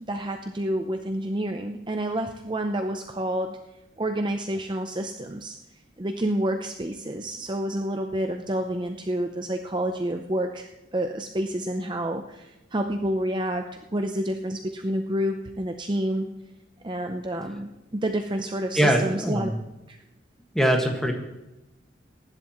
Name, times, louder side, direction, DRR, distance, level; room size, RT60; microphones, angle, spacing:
voice 1, 0.1-3.6 4.0-5.6 6.0-16.3 16.8-19.5 19.9-20.0, right 1 dB, 25° right, 5 dB, 0.7 m, -29 dB
voice 2, 18.8-19.6 20.5-21.1, right 1 dB, 5° left, 2 dB, 1.7 m, -22 dB
23.0 x 11.0 x 3.1 m, 0.98 s
head